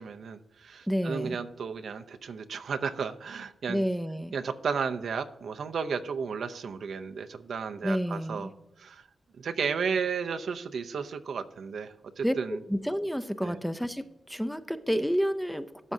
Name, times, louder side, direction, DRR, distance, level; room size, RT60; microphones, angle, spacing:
voice 1, 0.0-3.9 4.3-8.5 8.8-9.1 9.4-12.6 13.4-13.6, right 6 dB, 75° right, 10 dB, 0.5 m, -33 dB
voice 2, 0.9-1.4 3.7-4.3 7.8-8.5 12.2-12.3 12.7-15.9, equal, ahead, 10 dB, 0.5 m, -30 dB
12.0 x 7.4 x 2.7 m, 0.87 s
wide cardioid pair, 115°, 0 cm